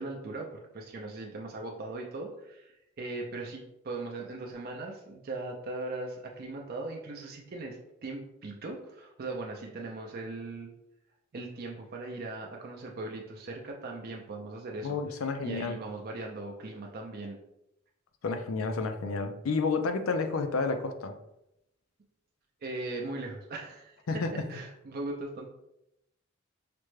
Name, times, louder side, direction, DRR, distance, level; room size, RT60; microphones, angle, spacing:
voice 1, 0.0-10.7 11.3-15.0 15.4-17.4 22.6-25.5, right 2 dB, 45° right, 1 dB, 0.4 m, -39 dB
voice 2, 14.8-15.8 18.2-21.1 24.1-24.3, left 4 dB, 85° left, 7 dB, 0.5 m, -30 dB
4.9 x 2.1 x 3.1 m, 0.84 s
head